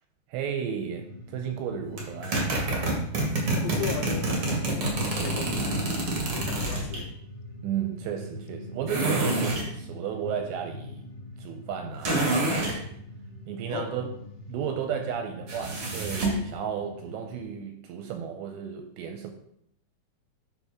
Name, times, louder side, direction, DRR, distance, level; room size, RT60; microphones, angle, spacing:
voice 1, 0.3-2.5 7.6-11.0 11.4-13.0 13.5-14.1 14.5-19.3, right 8 dB, 80° right, 2.6 m, -33 dB
sound 1, 0.9-17.4, equal, 55° left, 1.8 m, -41 dB
sound 2, 2.0-7.0 8.9-9.7 12.0-12.8 15.5-16.4, right 2 dB, 65° right, 1.3 m, -27 dB
voice 2, 3.6-4.4 4.7-5.8 6.3-7.1 13.7-13.9, left 8 dB, 85° left, 3.0 m, -36 dB
11.5 x 4.3 x 3.5 m
omnidirectional pair, 5.3 m